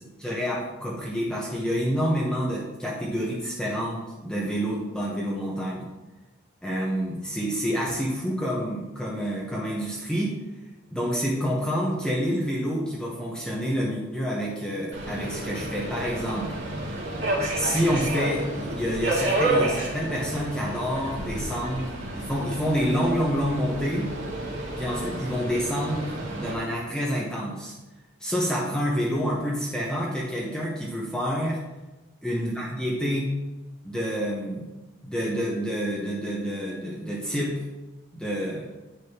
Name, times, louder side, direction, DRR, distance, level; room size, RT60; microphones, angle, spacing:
voice 1, 0.2-5.9 6.6-10.4 10.9-16.5 17.4-24.1 24.8-27.8 28.2-31.6 32.2-33.3 33.8-34.7 35.0-37.6 38.1-38.7, equal, 5° left, -5 dB, 1.1 m, -28 dB
Subway metro underground, 14.9-26.5, right 1 dB, 60° right, 2.5 m, -30 dB
9.9 x 6.5 x 3.0 m, 1.1 s
head